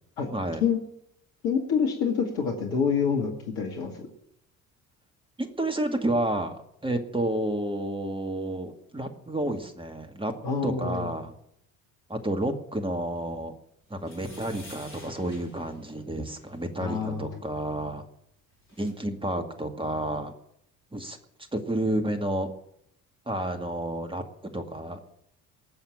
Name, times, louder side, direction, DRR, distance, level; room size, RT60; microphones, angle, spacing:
voice 1, 0.3-0.6 5.4-10.3 10.6-11.3 12.1-13.5 13.9-18.0 18.8-20.3 20.9-21.2 21.5-22.5 23.3-25.0, right 1 dB, 10° right, 6 dB, 2.2 m, -30 dB
voice 2, 1.4-3.9 10.4-11.1 16.8-17.4, left 6 dB, 60° left, 1 dB, 2.2 m, -27 dB
sound 1, 14.0-16.6 18.3-18.4 18.5-18.9, left 1 dB, 75° left, 4.8 m, -49 dB
19.5 x 7.3 x 8.7 m, 0.74 s
figure-of-eight pair, 50°, 43 cm